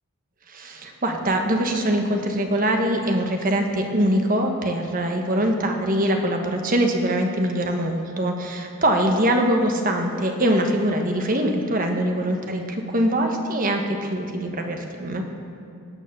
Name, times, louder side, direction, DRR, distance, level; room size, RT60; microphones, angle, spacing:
voice 1, 0.5-15.2, right 1 dB, 40° right, 3 dB, 1.3 m, -23 dB
17.0 x 9.4 x 6.8 m, 2.5 s
head